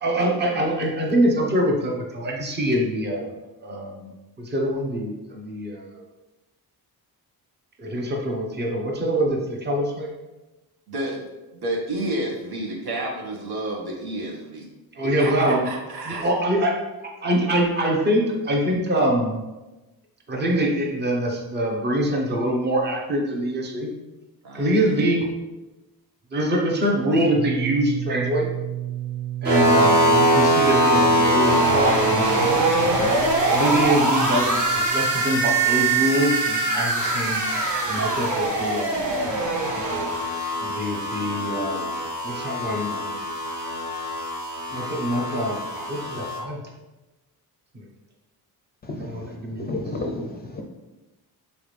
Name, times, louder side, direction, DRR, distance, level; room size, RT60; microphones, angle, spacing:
voice 1, 0.0-3.3 3.6-4.1 4.4-6.0 7.8-10.1 15.0-15.7 16.1-16.7 17.2-19.4 20.3-23.9 24.5-25.3 26.3-28.5 29.4-32.9 33.5-37.4 37.9-39.1 40.6-41.9 42.2-43.1 43.5-43.7 44.7-46.6 48.9-49.9, right 1 dB, 25° right, -1 dB, 0.9 m, -24 dB
voice 2, 10.9-11.2 11.6-14.7 15.2-16.3 24.4-24.7, right 1 dB, 75° right, -2 dB, 1.6 m, -30 dB
sound 1, 27.4-39.1, right 12 dB, ahead, 0.9 m, -35 dB
sound 2, 29.4-46.4, right 1 dB, 50° right, 1.6 m, -22 dB
voice 3, 48.9-49.3 49.6-50.6, left 2 dB, 25° left, 3 dB, 0.5 m, -31 dB
7.1 x 4.0 x 3.3 m, 1.1 s
wide cardioid pair, 180°, 38 cm